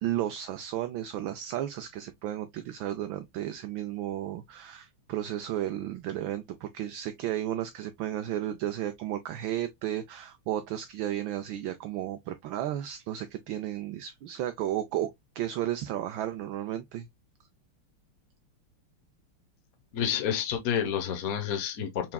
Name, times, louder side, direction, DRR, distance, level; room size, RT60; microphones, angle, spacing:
voice 1, 0.0-15.1 15.3-17.1, right 12 dB, 75° right, 1.2 m, -33 dB
voice 2, 19.9-22.1, left 8 dB, 50° left, 1.3 m, -29 dB
5.8 x 3.5 x 2.2 m
omnidirectional pair, 2.4 m